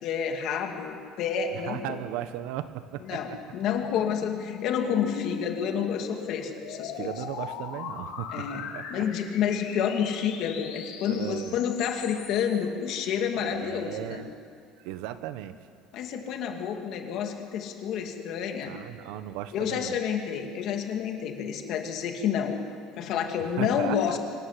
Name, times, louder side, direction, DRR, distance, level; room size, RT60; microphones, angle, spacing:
voice 1, 0.0-2.0 3.0-7.1 8.3-8.6 8.9-14.2 15.9-18.7 19.5-22.6 23.0-24.2, left 8 dB, 50° left, 4 dB, 2.4 m, -29 dB
voice 2, 1.7-3.4 7.0-9.1 11.1-11.5 13.3-14.3 14.8-15.6 18.6-20.0 23.4-24.2, right 12 dB, 75° right, 11 dB, 1.2 m, -36 dB
sound 1, 2.9-12.6, left 7 dB, 70° left, 2.9 m, -39 dB
25.0 x 15.0 x 9.9 m, 2.3 s
cardioid pair, 170°, 0 cm